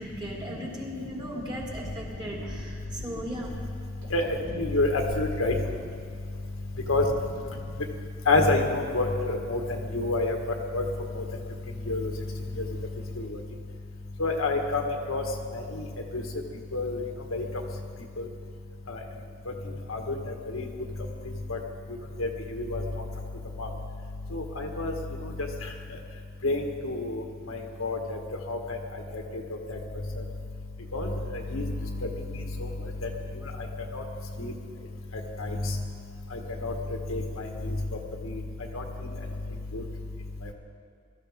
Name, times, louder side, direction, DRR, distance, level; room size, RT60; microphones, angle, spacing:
voice 1, 0.0-3.5, equal, 20° right, -3 dB, 2.9 m, -37 dB
sound 1, 1.4-8.0, equal, 75° right, 3.5 m, -49 dB
voice 2, 4.1-5.6 6.9-7.1 8.3-9.6 9.9-10.4 10.7-10.9 11.1-11.2 11.9-12.1 12.6-12.7 13.2-13.4 14.2-14.8 15.1-15.2 15.5-15.9 16.1-16.2 16.7-17.0 17.3-17.5 18.2-18.3 18.9-19.0 19.9-20.7 21.5-21.6 22.2-23.0 23.6-23.7 24.3-24.9 25.2-25.3 26.4-28.2 28.5-28.8 29.1-29.2 29.7-29.8 30.9-31.6 32.6-32.7 33.9-34.0 34.4-34.5 35.4-35.7 36.3-36.7 37.1-37.7 38.7-38.8 39.7-39.8, left 2 dB, 85° left, 2 dB, 1.6 m, -28 dB
21.0 x 13.5 x 3.7 m, 2.3 s
head